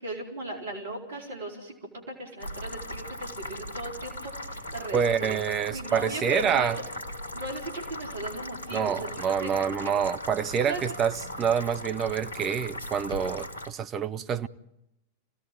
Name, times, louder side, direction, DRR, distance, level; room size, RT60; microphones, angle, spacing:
voice 1, 0.0-1.7 2.1-5.4 5.7-6.9 7.3-10.0 10.7-11.0, right 2 dB, 65° right, 4.6 m, -37 dB
sound 1, 2.4-13.7, left 1 dB, 75° left, 1.8 m, -38 dB
voice 2, 4.9-6.8 8.7-14.5, right 7 dB, 30° right, 1.1 m, -27 dB
27.5 x 17.5 x 9.4 m
figure-of-eight pair, 90°, 0 cm